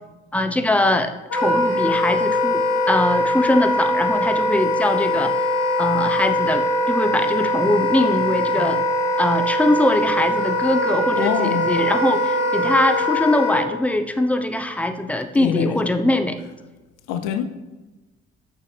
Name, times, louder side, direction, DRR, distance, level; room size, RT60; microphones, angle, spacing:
voice 1, 0.3-5.3 5.8-8.8 9.2-16.4, left 1 dB, 5° left, 0.8 m, -22 dB
Wind instrument woodwind instrument, 1.3-13.6, left 1 dB, 55° left, 2.6 m, -21 dB
voice 2, 11.2-11.7 15.3-15.9 17.1-17.4, left 9 dB, 75° left, 0.7 m, -24 dB
11.5 x 6.5 x 3.3 m
hypercardioid pair, 45°, 31 cm